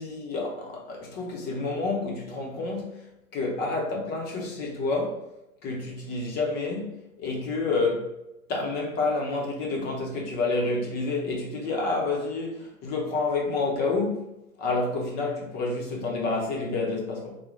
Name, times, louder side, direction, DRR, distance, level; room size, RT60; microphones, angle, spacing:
voice 1, 0.0-5.3 5.6-8.1 8.5-17.4, left 3 dB, 25° left, 0.8 m, -29 dB
3.9 x 2.3 x 3.1 m
hypercardioid pair, 125°, 42 cm